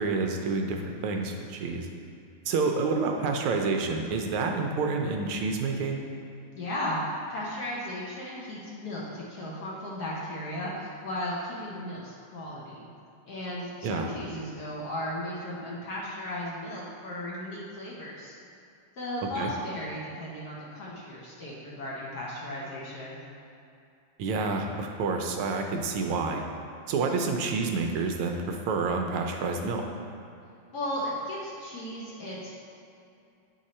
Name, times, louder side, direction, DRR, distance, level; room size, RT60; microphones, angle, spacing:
voice 1, 0.0-1.9 2.5-6.0 13.8-14.1 19.3-19.5 24.2-26.4 26.9-29.8, right 4 dB, 85° right, 3 dB, 1.6 m, -28 dB
voice 2, 6.5-7.0 7.3-12.9 13.3-18.3 19.0-23.2 30.7-32.5, left 1 dB, 55° left, -5 dB, 1.4 m, -35 dB
8.3 x 3.8 x 4.2 m, 2.6 s
omnidirectional pair, 2.3 m